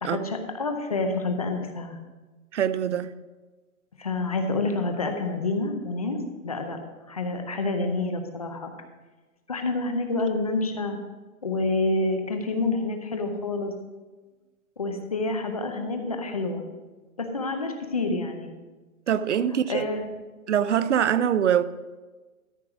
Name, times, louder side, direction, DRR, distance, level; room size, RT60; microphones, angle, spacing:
voice 1, 0.0-2.0 4.0-6.8 7.1-8.7 9.5-11.0 11.4-13.7 14.8-16.6 17.2-18.5 19.7-20.0, left 2 dB, 25° left, 0.7 m, -28 dB
voice 2, 2.5-3.1 19.1-19.9 20.5-21.6, right 9 dB, 55° right, 0.6 m, -23 dB
13.5 x 4.7 x 6.0 m
hypercardioid pair, 180°, 42 cm